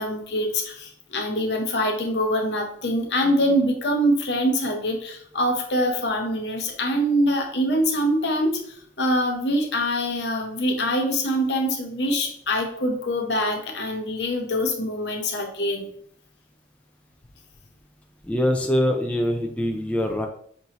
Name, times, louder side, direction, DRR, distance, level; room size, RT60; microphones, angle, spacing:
voice 1, 0.0-8.6 9.0-15.9, equal, 75° left, 3 dB, 0.8 m, -24 dB
voice 2, 18.2-20.3, left 1 dB, 5° left, 2 dB, 0.3 m, -23 dB
5.3 x 2.6 x 2.9 m, 0.63 s
head